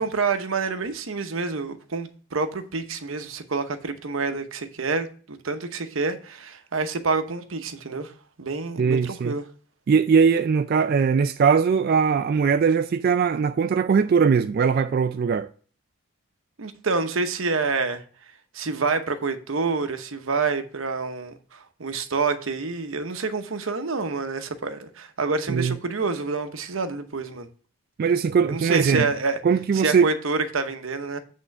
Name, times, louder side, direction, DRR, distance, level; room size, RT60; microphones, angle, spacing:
voice 1, 0.0-8.1 8.4-9.4 16.6-18.0 18.5-27.5 28.5-29.4 29.7-31.2, right 4 dB, 80° right, 0.9 m, -27 dB
voice 2, 8.8-9.4 9.9-15.5 25.5-25.8 28.0-29.1 29.4-30.1, right 6 dB, 45° right, 0.3 m, -20 dB
8.5 x 3.7 x 6.5 m
head